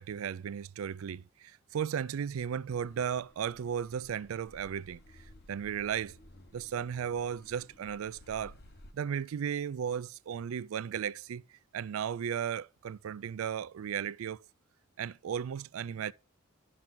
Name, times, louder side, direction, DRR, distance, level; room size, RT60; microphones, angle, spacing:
voice 1, 0.0-5.0 5.5-6.2 6.5-8.5 8.9-11.4 11.7-14.4 15.0-16.1, right 8 dB, 85° right, 0.4 m, -35 dB
Car passing by / Accelerating revving vroom, 2.7-8.9, left 1 dB, 50° left, 1.0 m, -56 dB
12.0 x 6.1 x 3.8 m
head